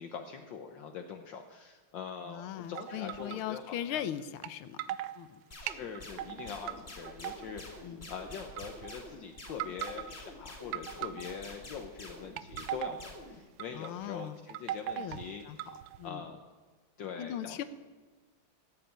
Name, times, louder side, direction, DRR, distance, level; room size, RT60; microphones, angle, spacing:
voice 1, 0.0-4.1 5.6-15.7 16.0-16.4 17.0-17.6, left 6 dB, 65° left, 5 dB, 1.6 m, -43 dB
voice 2, 2.2-4.8 5.1-5.4 7.8-8.1 13.7-14.4 15.0-15.2 15.4-15.6 16.0-16.2 17.0-17.6, left 11 dB, 90° left, 14 dB, 1.7 m, -39 dB
sound 1, 2.8-3.6 4.4-4.5 4.8-5.2 5.7-6.8 7.0-7.8 8.5-9.0 9.5-10.2 10.7-11.6 12.2-13.1 13.6-13.9 14.2-16.1, right 12 dB, 75° right, 1.4 m, -39 dB
sound 2, 5.5-13.4, left 1 dB, 30° left, 2.9 m, -48 dB
16.5 x 8.3 x 9.1 m, 1.4 s
omnidirectional pair, 2.2 m